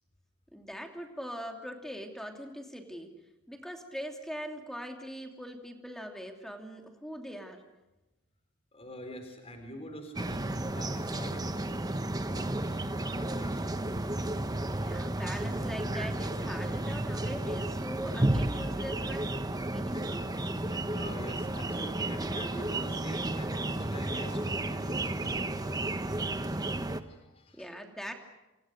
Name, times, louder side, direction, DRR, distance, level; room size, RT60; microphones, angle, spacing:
voice 1, 0.5-3.1 3.5-7.6 14.7-19.3 19.7-20.3 27.5-28.1, equal, ahead, 3 dB, 2.8 m, -41 dB
voice 2, 8.7-13.7 19.9-27.7, equal, 25° left, 5 dB, 3.9 m, -46 dB
sound 1, 10.2-27.0, right 1 dB, 15° right, 1.0 m, -32 dB
29.0 x 26.0 x 6.6 m, 1.0 s
head